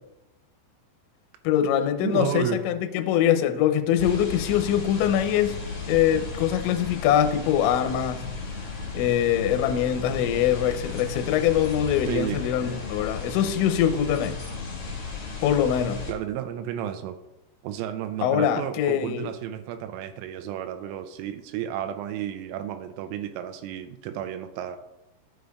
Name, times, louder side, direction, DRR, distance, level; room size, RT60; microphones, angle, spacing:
voice 1, 1.4-5.6 5.9-8.3 8.9-14.4 15.4-16.0 18.2-19.3, left 10 dB, 80° left, 7 dB, 2.7 m, -23 dB
voice 2, 2.0-2.6 12.1-12.4 16.1-17.2 17.6-24.8, right 10 dB, 90° right, 8 dB, 3.1 m, -32 dB
sound 1, 4.0-16.1, left 4 dB, 55° left, 1.6 m, -35 dB
13.0 x 6.6 x 2.3 m, 0.91 s
omnidirectional pair, 5.6 m